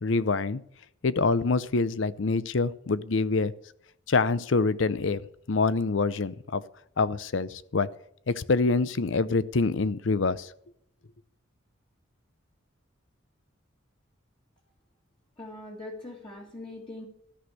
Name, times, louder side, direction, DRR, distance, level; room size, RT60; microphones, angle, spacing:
voice 1, 0.0-0.6 1.0-3.5 4.1-5.2 5.5-6.6 7.0-7.9 8.3-10.5, left 3 dB, 70° left, 17 dB, 0.6 m, -25 dB
voice 2, 15.4-17.1, left 2 dB, 25° left, -2 dB, 1.8 m, -41 dB
13.0 x 6.3 x 9.6 m, 0.72 s
head